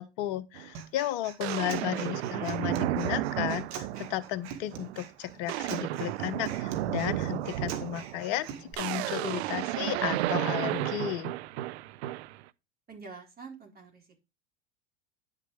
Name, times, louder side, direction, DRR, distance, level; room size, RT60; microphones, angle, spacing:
voice 1, 0.0-11.3, left 13 dB, 55° left, 1.3 m, -34 dB
sound 1, 0.5-0.7 1.4-4.3 4.7-5.0 5.3-12.4, right 14 dB, 65° right, 0.7 m, -32 dB
Human voice, 0.7-8.7, right 8 dB, 50° right, 2.4 m, -43 dB
voice 2, 12.9-14.2, right 4 dB, 25° right, 4.5 m, -47 dB
10.5 x 7.2 x 3.4 m
hypercardioid pair, 90°, 35 cm